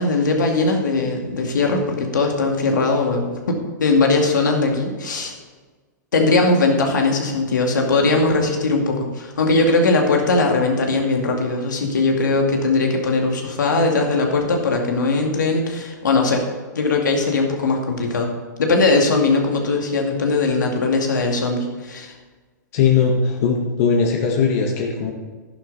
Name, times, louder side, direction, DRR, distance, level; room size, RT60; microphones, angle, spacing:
voice 1, 0.0-5.3 6.1-16.4 16.7-18.3 18.6-22.1, left 3 dB, 75° left, 2 dB, 2.3 m, -19 dB
voice 2, 22.7-25.1, left 5 dB, 55° left, 1 dB, 1.7 m, -19 dB
11.5 x 11.0 x 4.1 m, 1.4 s
hypercardioid pair, 110°, 10 cm